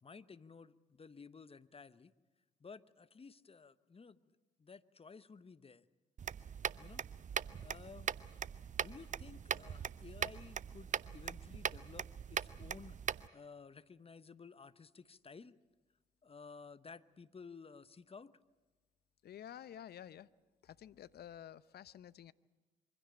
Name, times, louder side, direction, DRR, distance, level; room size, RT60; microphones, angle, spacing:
voice 1, 0.0-2.1 2.6-4.2 4.6-5.8 6.8-7.0 7.6-8.1 8.8-13.0 13.3-15.5 16.2-18.4, left 5 dB, 30° left, 15 dB, 0.9 m, -54 dB
sound 1, 6.2-13.3, right 8 dB, 40° right, 0.6 m, -41 dB
voice 2, 19.2-20.3 20.6-22.3, left 10 dB, 50° left, 18 dB, 0.7 m, -51 dB
24.0 x 16.0 x 8.9 m, 1.2 s
hypercardioid pair, 45°, 20 cm